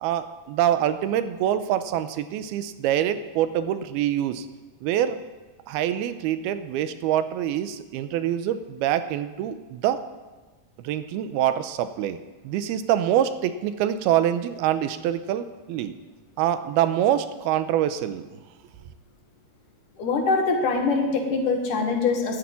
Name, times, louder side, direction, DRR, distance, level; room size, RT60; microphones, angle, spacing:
voice 1, 0.0-4.5 4.8-5.2 5.7-10.0 10.8-12.2 12.4-16.0 16.4-18.4, right 11 dB, 85° right, 11 dB, 2.6 m, -25 dB
voice 2, 20.0-22.4, left 4 dB, 60° left, 3 dB, 2.9 m, -23 dB
11.5 x 9.9 x 8.8 m, 1.3 s
omnidirectional pair, 4.5 m